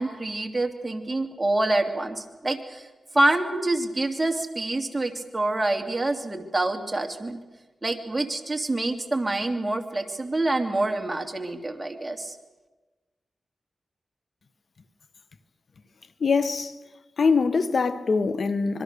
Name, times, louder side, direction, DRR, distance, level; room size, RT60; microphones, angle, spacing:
voice 1, 0.0-2.9 3.1-7.4 7.8-12.3, right 2 dB, 20° right, 2.8 m, -26 dB
voice 2, 16.2-16.7 17.2-18.8, left 4 dB, 60° left, 1.3 m, -23 dB
26.0 x 22.0 x 6.9 m
cardioid pair, 70°, 0 cm